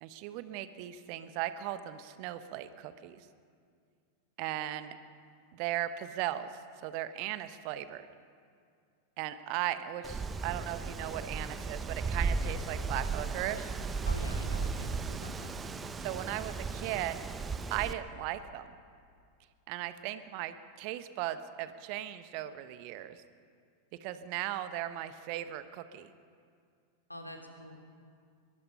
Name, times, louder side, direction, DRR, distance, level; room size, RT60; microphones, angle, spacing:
voice 1, 0.0-3.2 4.4-5.0 5.5-6.5 6.8-8.1 9.2-13.7 16.0-17.2 17.7-18.7 19.7-23.2 24.0-26.1, right 13 dB, 45° right, 12 dB, 1.2 m, -37 dB
Wind, 10.0-17.9, right 4 dB, 20° right, 1.0 m, -35 dB
voice 2, 14.0-15.5 27.1-27.7, left 1 dB, 85° left, 3 dB, 2.6 m, -45 dB
22.5 x 22.5 x 5.6 m, 2.2 s
figure-of-eight pair, 90°, 0 cm